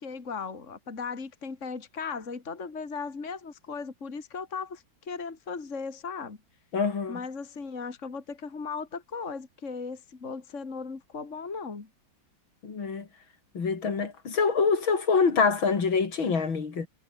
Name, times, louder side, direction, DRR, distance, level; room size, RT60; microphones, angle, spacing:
voice 1, 0.0-6.4 7.1-11.9, left 5 dB, 35° left, 2.7 m, -37 dB
voice 2, 6.7-7.2 12.6-13.1 13.5-16.9, left 5 dB, 75° left, 3.8 m, -25 dB
omnidirectional pair, 2.2 m